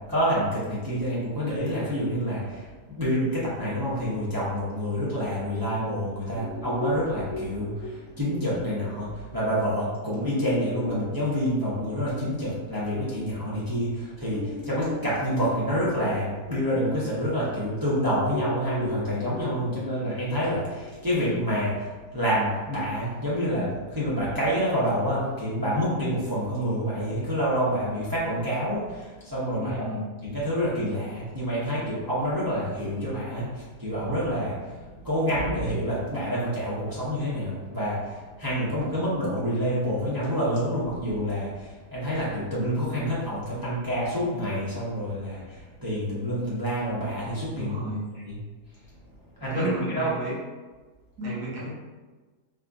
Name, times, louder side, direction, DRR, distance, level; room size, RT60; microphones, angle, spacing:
voice 1, 0.1-29.8 30.2-47.7 48.3-48.4 49.4-50.2, equal, 30° right, -8 dB, 0.4 m, -28 dB
sound 1, 6.3-13.4 13.8-13.9 14.3-17.9 18.3-21.4, left 2 dB, 60° left, 0.9 m, -38 dB
voice 2, 29.6-30.1 47.6-48.0 49.5-50.3 51.2-51.7, right 1 dB, 85° right, -7 dB, 1.6 m, -32 dB
4.1 x 2.4 x 2.6 m, 1.3 s
omnidirectional pair, 1.6 m